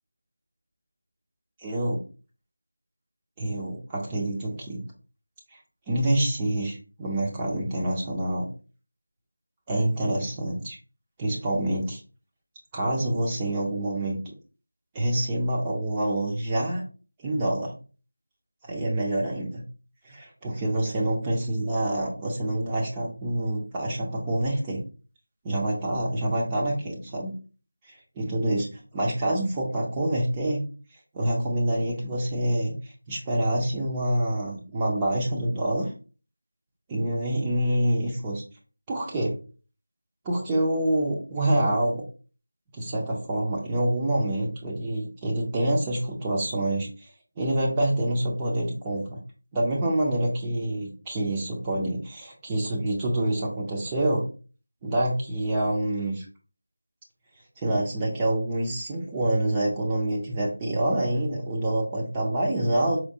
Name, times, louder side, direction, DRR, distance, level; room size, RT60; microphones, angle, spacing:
voice 1, 1.6-2.0 3.4-4.8 5.9-8.5 9.7-10.8 11.2-12.0 12.7-14.3 14.9-16.8 17.2-17.7 18.6-19.6 20.0-24.8 25.4-27.3 27.9-30.6 31.1-35.9 36.9-38.4 38.9-39.4 40.2-42.0 42.7-47.1 47.4-49.2 49.5-54.2 54.8-56.3 57.6-63.0, right 1 dB, 10° right, -3 dB, 0.5 m, -26 dB
4.3 x 2.3 x 2.7 m, 0.36 s
figure-of-eight pair, 170°, 0 cm